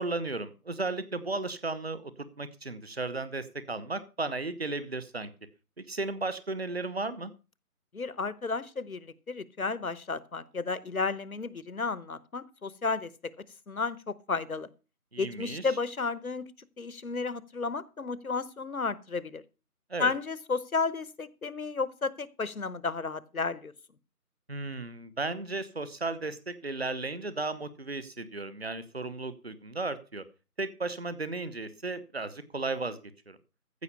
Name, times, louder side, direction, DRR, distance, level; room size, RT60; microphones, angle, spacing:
voice 1, 0.0-2.1 2.4-5.3 5.8-7.3 15.1-15.7 19.9-20.1 24.5-30.2 30.6-33.0 33.3-33.4, right 3 dB, 40° right, 14 dB, 1.1 m, -34 dB
voice 2, 7.9-13.1 13.7-14.7 15.2-16.5 16.8-19.4 20.0-23.7, left 4 dB, 65° left, 19 dB, 1.0 m, -32 dB
15.0 x 5.7 x 6.8 m, 0.32 s
figure-of-eight pair, 175°, 45 cm